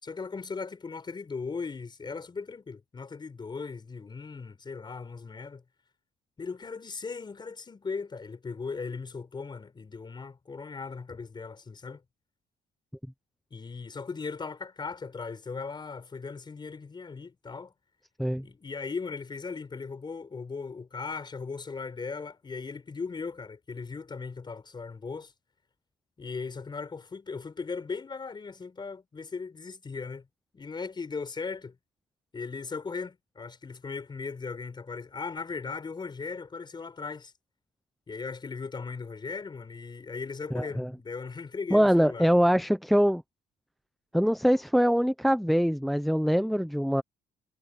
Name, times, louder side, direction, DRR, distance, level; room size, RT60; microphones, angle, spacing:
voice 1, 0.0-5.6 6.4-12.0 13.5-17.7 18.4-25.3 26.2-30.3 30.5-31.8 32.3-37.3 38.1-42.3, left 4 dB, 25° left, 5.3 m, -38 dB
voice 2, 40.5-40.9 41.7-43.2 44.1-47.0, equal, ahead, 0.8 m, -23 dB
cardioid pair, 110°, 17 cm